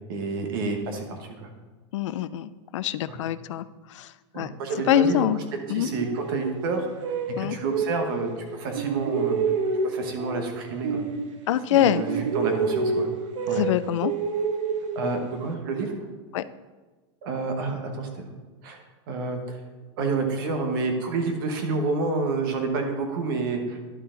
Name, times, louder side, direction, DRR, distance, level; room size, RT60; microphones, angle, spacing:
voice 1, 0.1-1.5 3.1-3.2 4.3-5.2 5.7-9.4 9.8-11.0 11.7-13.1 13.5-13.6 14.9-15.9 17.2-18.2 18.6-19.6 20.0-24.0, right 3 dB, 45° right, 4 dB, 1.2 m, -29 dB
voice 2, 1.9-4.5 4.9-5.4 5.7-5.9 7.4-7.6 11.5-12.0 13.5-14.1 16.3-16.4, left 11 dB, 80° left, 15 dB, 0.4 m, -24 dB
sound 1, 5.7-8.4 8.7-11.7 11.9-15.5, right 4 dB, 90° right, 1.1 m, -29 dB
11.5 x 4.6 x 3.8 m, 1.3 s
supercardioid pair, 180°, 16 cm